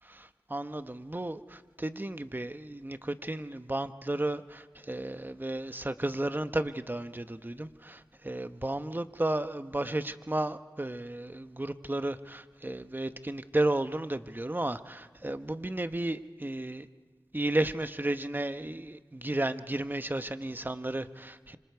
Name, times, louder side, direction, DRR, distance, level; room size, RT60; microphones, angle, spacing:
voice 1, 0.1-16.9 17.3-21.6, right 1 dB, 25° right, 10 dB, 1.0 m, -33 dB
26.0 x 25.5 x 4.7 m, 1.4 s
wide cardioid pair, 40°, 7 cm